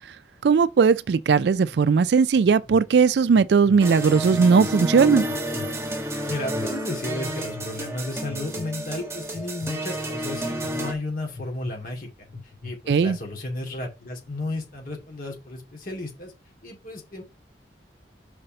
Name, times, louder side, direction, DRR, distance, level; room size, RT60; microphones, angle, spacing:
voice 1, 0.4-5.3 12.9-13.2, right 5 dB, 70° right, 0.3 m, -18 dB
sound 1, 1.7-1.8 2.4-2.8 3.3-3.8 4.3-4.7 5.3-5.7 6.3-6.7 7.3-7.6 8.3-8.7 9.3-9.7 10.4-10.7 11.3-11.7 12.3-12.7, left 4 dB, 65° left, 2.5 m, -39 dB
sound 2, 3.8-10.9, right 1 dB, 15° right, 1.2 m, -30 dB
voice 2, 6.3-12.1 12.6-16.3 16.6-17.2, left 2 dB, 50° left, 2.5 m, -33 dB
5.6 x 4.9 x 5.2 m
head